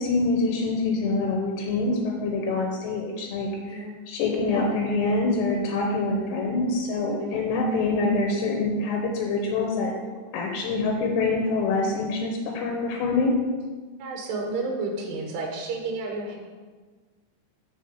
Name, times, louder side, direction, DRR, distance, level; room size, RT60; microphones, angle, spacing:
voice 1, 0.0-9.9 10.3-13.4, left 3 dB, 85° left, 1 dB, 2.9 m, -25 dB
voice 2, 14.0-16.4, right 3 dB, 75° right, 0 dB, 3.2 m, -31 dB
7.0 x 4.1 x 6.3 m, 1.4 s
omnidirectional pair, 4.9 m